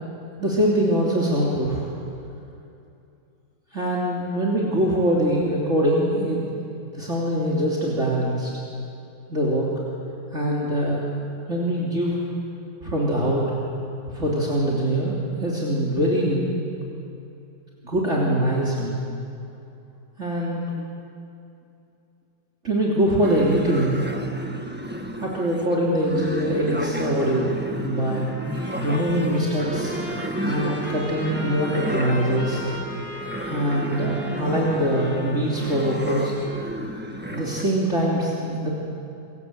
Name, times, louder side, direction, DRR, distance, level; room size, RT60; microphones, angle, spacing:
voice 1, 0.4-1.9 3.7-6.5 6.9-8.5 9.3-9.7 10.3-11.1 11.5-12.2 12.8-13.4 14.1-16.5 17.8-19.0 20.2-20.7 22.6-24.0 25.2-28.3 28.8-30.0 30.4-32.6 33.5-36.4 37.3-38.7, right 1 dB, 40° right, -5 dB, 3.7 m, -23 dB
sound 1, 23.2-37.6, equal, 5° right, 1.4 m, -32 dB
Trumpet, 28.2-36.9, left 1 dB, 30° left, 4.6 m, -39 dB
29.0 x 23.5 x 8.2 m, 2.7 s
omnidirectional pair, 1.9 m